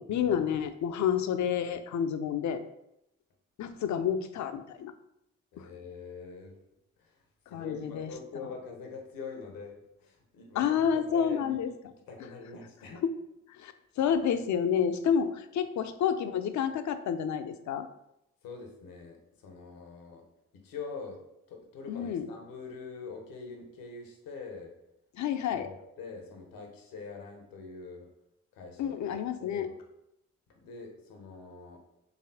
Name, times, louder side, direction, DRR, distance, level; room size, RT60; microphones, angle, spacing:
voice 1, 0.0-2.6 3.6-4.9 5.6-5.7 7.5-8.1 10.5-11.7 13.0-13.1 13.5-17.9 21.9-22.3 25.1-25.7 28.8-29.7, left 8 dB, 60° left, 10 dB, 0.5 m, -29 dB
voice 2, 5.5-6.6 7.0-7.2 7.5-11.6 11.9-13.0 18.4-20.3 20.5-21.2 21.5-24.7 25.5-28.1 28.5-29.0 29.4-29.8 30.5-32.0, left 4 dB, 75° left, 3 dB, 0.9 m, -44 dB
4.0 x 3.4 x 2.7 m, 0.83 s
hypercardioid pair, 40°, 34 cm